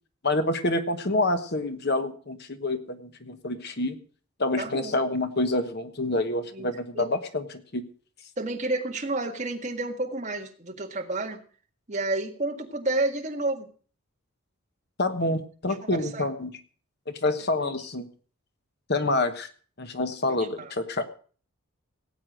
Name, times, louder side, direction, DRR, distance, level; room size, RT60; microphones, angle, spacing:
voice 1, 0.2-4.0 4.4-7.8 15.0-16.5 17.1-18.1 18.9-19.5 19.8-21.0, left 2 dB, 50° left, 9 dB, 1.2 m, -27 dB
voice 2, 4.6-5.0 6.5-6.7 6.9-7.1 8.4-11.4 11.9-13.7 15.8-16.3 17.6-17.7 20.6-20.7, right 2 dB, 35° right, 3 dB, 1.7 m, -30 dB
17.5 x 8.5 x 6.3 m, 0.42 s
head